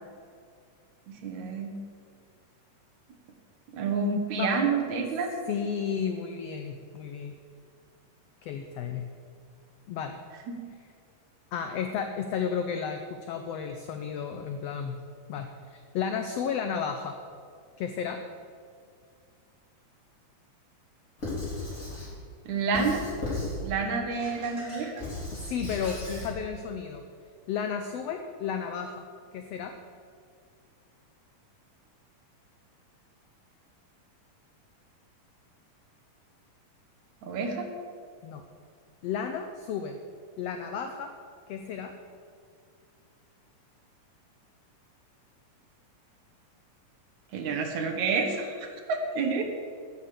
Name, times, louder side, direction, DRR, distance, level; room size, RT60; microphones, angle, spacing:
voice 1, 1.1-1.8 3.7-5.3 22.5-23.0 23.6-24.9 37.2-37.7 47.3-49.4, right 4 dB, 65° right, 3 dB, 2.5 m, -29 dB
voice 2, 5.5-7.3 8.4-9.1 9.9-10.2 11.5-15.0 15.3-17.2 17.8-18.2 25.3-27.0 27.5-29.0 29.3-29.8 38.2-38.4 39.0-40.0 40.4-41.1 41.5-41.9, left 7 dB, 90° left, 6 dB, 1.4 m, -33 dB
Squeak / Writing, 21.2-22.1 22.7-23.6 24.1-26.3, left 2 dB, 20° left, 4.2 m, -36 dB
12.0 x 7.4 x 8.3 m, 2.2 s
omnidirectional pair, 3.7 m